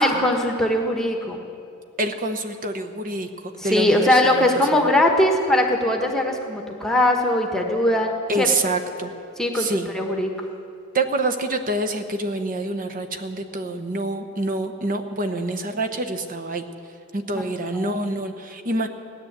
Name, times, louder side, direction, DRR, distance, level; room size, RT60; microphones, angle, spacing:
voice 1, 0.0-1.4 3.6-8.7 9.4-10.3 17.3-17.4 17.7-18.0, left 1 dB, ahead, 2 dB, 1.3 m, -21 dB
voice 2, 2.0-4.4 4.7-4.8 8.3-9.1 9.5-9.9 10.9-16.6 17.1-18.9, right 2 dB, 40° right, 6 dB, 1.0 m, -26 dB
17.0 x 10.5 x 8.1 m, 2.5 s
head